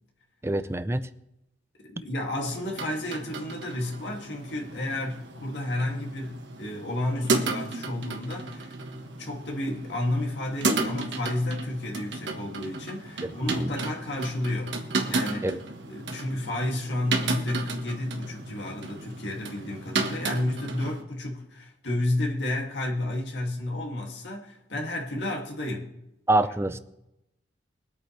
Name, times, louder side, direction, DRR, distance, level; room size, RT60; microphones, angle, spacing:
voice 1, 0.4-1.0 13.6-13.7 15.4-15.6 26.3-26.8, right 2 dB, 15° right, 12 dB, 0.5 m, -25 dB
voice 2, 1.8-14.8 15.1-15.5 15.9-25.9, left 1 dB, 70° left, -1 dB, 2.4 m, -31 dB
sound 1, 2.4-21.0, right 3 dB, 70° right, 1.5 m, -33 dB
22.5 x 8.6 x 3.3 m, 0.87 s
head